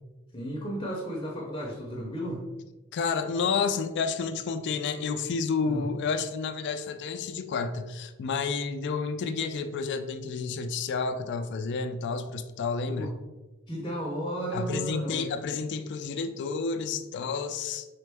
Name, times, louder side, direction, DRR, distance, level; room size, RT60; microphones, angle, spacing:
voice 1, 0.3-2.5 5.7-5.9 12.8-13.1 13.7-15.3, right 1 dB, 20° left, -2 dB, 0.6 m, -34 dB
voice 2, 2.9-13.1 14.5-17.9, left 5 dB, 55° left, 8 dB, 0.3 m, -30 dB
4.1 x 3.7 x 3.4 m, 1.1 s
head